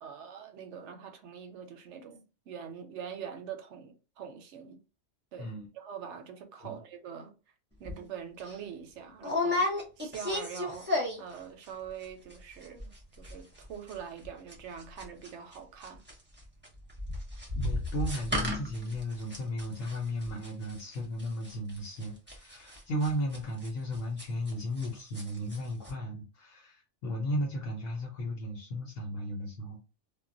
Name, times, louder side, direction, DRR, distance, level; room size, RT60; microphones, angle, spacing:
voice 1, 0.0-4.8 5.3-7.4 7.8-10.9 11.2-16.0, right 7 dB, 75° right, 0.8 m, -44 dB
sound 1, 7.9-8.0 8.4-8.6 9.2-11.4 11.6-12.1 12.3-12.4 12.6-13.0 13.2-24.9 25.1-25.6 25.8-25.9, left 2 dB, 10° right, 0.7 m, -34 dB
voice 2, 17.6-29.8, equal, 80° left, 1.0 m, -35 dB
2.3 x 2.1 x 3.7 m
omnidirectional pair, 1.2 m